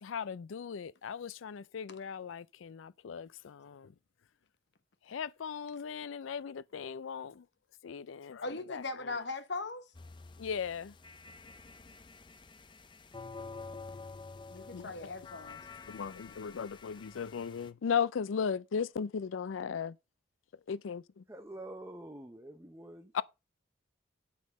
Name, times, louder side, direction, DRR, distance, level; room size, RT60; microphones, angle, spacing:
voice 1, 0.0-3.9 5.1-7.4 7.8-8.4 8.7-8.8 10.4-10.9 14.7-14.9 15.9-19.9 20.7-21.2 23.1-23.2, left 6 dB, 85° left, 0.4 m, -37 dB
voice 2, 8.4-9.9 14.5-15.6, left 3 dB, 60° left, 1.0 m, -39 dB
sound 1, 9.9-17.7, left 4 dB, 25° left, 0.5 m, -49 dB
voice 3, 21.3-23.2, right 1 dB, 15° right, 0.7 m, -47 dB
8.4 x 5.6 x 5.2 m
head